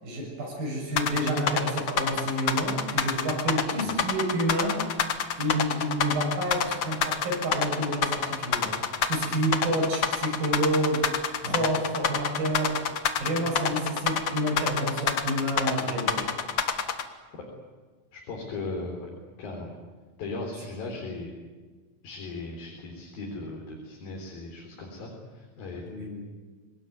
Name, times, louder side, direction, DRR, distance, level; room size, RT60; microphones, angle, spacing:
voice 1, 0.0-4.8 5.4-11.0 11.4-12.8 13.2-16.3 25.9-26.2, right 1 dB, 80° right, 0 dB, 8.5 m, -29 dB
sound 1, 1.0-17.0, left 7 dB, 50° left, 1.9 m, -27 dB
voice 2, 18.1-19.1 19.4-19.7 20.2-21.3 22.0-25.8, left 3 dB, 85° left, -1 dB, 5.7 m, -37 dB
27.0 x 19.0 x 9.5 m, 1.4 s
omnidirectional pair, 4.1 m